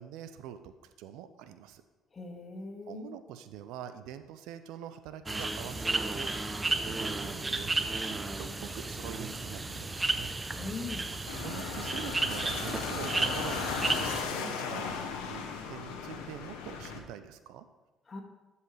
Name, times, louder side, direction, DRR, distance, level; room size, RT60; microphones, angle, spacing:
voice 1, 0.0-1.8 2.9-10.3 11.3-17.7, right 10 dB, 75° right, 11 dB, 0.5 m, -45 dB
voice 2, 2.1-3.1 10.6-11.3 18.1-18.2, left 3 dB, 35° left, 1 dB, 1.9 m, -41 dB
sound 1, 5.3-14.2, right 2 dB, 20° right, 0.7 m, -33 dB
sound 2, 11.3-17.0, left 5 dB, 85° left, 1.0 m, -36 dB
12.0 x 5.6 x 3.3 m, 1.1 s
hypercardioid pair, 60°, 0 cm